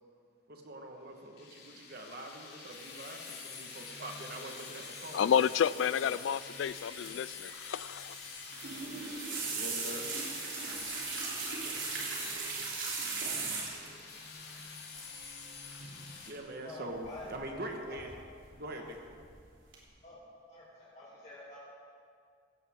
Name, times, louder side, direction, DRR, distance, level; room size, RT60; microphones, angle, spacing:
voice 1, 0.5-6.3 9.6-10.1 16.3-18.1 18.5-19.0, right 1 dB, 55° right, 1.4 m, -44 dB
sound 1, 1.4-16.3, left 4 dB, 60° left, 2.6 m, -46 dB
voice 2, 5.1-8.1, left 8 dB, 75° left, 0.3 m, -30 dB
sound 2, 8.4-14.0 15.0-15.3 15.5-15.9 17.0-17.6 17.9-18.5 18.9-19.3 19.7-19.8, right 4 dB, 85° right, 3.3 m, -37 dB
voice 3, 16.5-17.6 17.9-18.0 20.0-20.2 20.5-21.6, left 1 dB, 40° left, 2.7 m, -48 dB
16.0 x 16.0 x 3.6 m
head